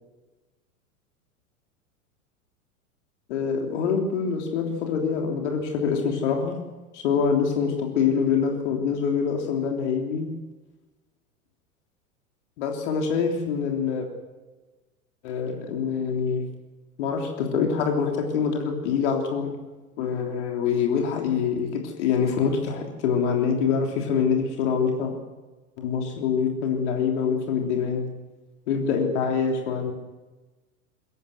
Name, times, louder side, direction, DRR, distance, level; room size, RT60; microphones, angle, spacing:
voice 1, 3.3-6.6 6.9-10.3 12.6-14.1 15.2-16.4 17.0-19.6 20.0-25.1 25.8-28.1 28.7-29.9, left 6 dB, 50° left, 2 dB, 3.5 m, -25 dB
22.5 x 16.5 x 8.0 m, 1.2 s
figure-of-eight pair, 90°, 43 cm